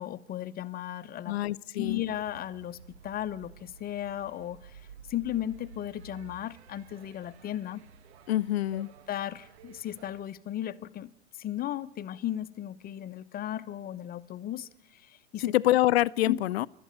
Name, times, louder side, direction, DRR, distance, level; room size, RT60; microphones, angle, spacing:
voice 1, 0.0-1.4 1.8-2.8 3.0-4.8 5.1-7.8 8.7-8.8 9.1-15.5 16.2-16.4, left 12 dB, 25° left, 1.1 m, -35 dB
voice 2, 1.2-2.0 8.3-8.9 15.4-16.7, left 15 dB, 60° left, 0.8 m, -26 dB
sound 1, 1.8-10.2, right 5 dB, 65° right, 1.4 m, -52 dB
28.0 x 13.0 x 9.7 m
hypercardioid pair, 100°, 35 cm